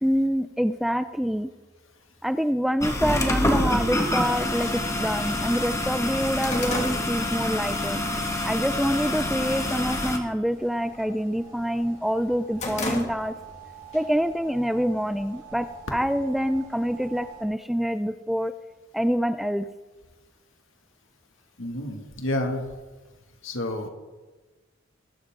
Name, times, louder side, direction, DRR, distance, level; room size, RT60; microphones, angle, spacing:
voice 1, 0.0-1.5 2.2-8.0 8.4-13.3 13.9-18.5 18.9-19.7, equal, ahead, 12 dB, 0.4 m, -26 dB
sound 1, 2.8-10.2, left 1 dB, 15° left, 1.6 m, -27 dB
sound 2, 6.4-8.0 8.3-8.7 9.1-9.6 9.9-10.2 10.5-11.7 12.1-13.6 13.9-14.1 14.9-15.8, left 2 dB, 35° left, 2.5 m, -34 dB
sound 3, 10.5-17.4, right 7 dB, 70° right, 4.7 m, -47 dB
voice 2, 21.6-22.7 23.4-23.9, left 1 dB, 75° left, 4 dB, 2.1 m, -29 dB
20.5 x 12.0 x 3.7 m, 1.2 s
head